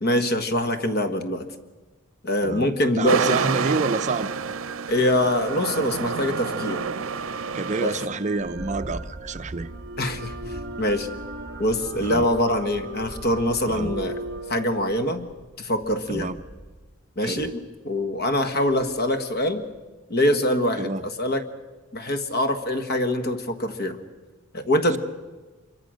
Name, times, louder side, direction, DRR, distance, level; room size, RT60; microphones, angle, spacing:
voice 1, 0.0-1.4 2.2-3.4 4.9-6.9 7.8-8.0 10.0-11.1 11.6-14.2 14.5-15.3 15.6-16.3 17.2-19.6 20.1-21.4 21.9-24.0 24.5-25.0, left 1 dB, 50° left, 9 dB, 1.6 m, -24 dB
voice 2, 2.4-4.3 7.5-9.7 12.0-12.3 13.7-13.9 16.1-16.4 17.2-17.5 20.8-21.0, right 3 dB, 35° right, 11 dB, 0.6 m, -28 dB
sound 1, 3.1-8.1, right 6 dB, 85° right, 0.7 m, -29 dB
sound 2, 4.1-15.1, right 2 dB, 55° right, 2.0 m, -37 dB
sound 3, 8.4-17.0 17.4-17.6 18.2-19.1 19.4-19.8, right 1 dB, 15° left, 2.2 m, -42 dB
25.5 x 23.0 x 6.4 m, 1.2 s
head